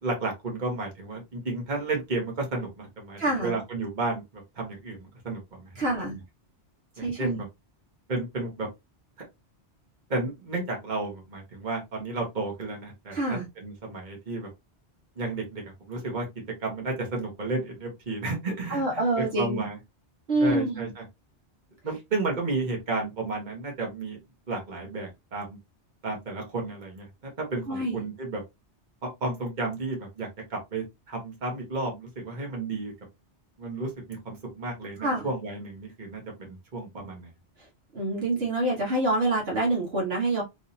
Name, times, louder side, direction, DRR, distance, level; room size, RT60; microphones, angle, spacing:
voice 1, 0.0-4.2 4.6-5.7 7.0-7.4 8.1-8.7 10.1-14.5 15.2-15.6 15.9-16.2 16.6-19.8 20.4-21.0 21.8-24.2 24.5-25.6 26.0-27.1 27.4-28.4 29.0-32.9 33.6-33.9 34.2-37.3, right 3 dB, 45° right, 1.4 m, -32 dB
voice 2, 3.2-3.6 5.7-6.2 7.0-7.4 13.1-13.5 18.7-19.7 20.3-20.9 27.7-28.0 35.0-35.3 37.9-40.4, right 2 dB, 65° right, 1.5 m, -26 dB
3.6 x 3.2 x 2.7 m
omnidirectional pair, 1.1 m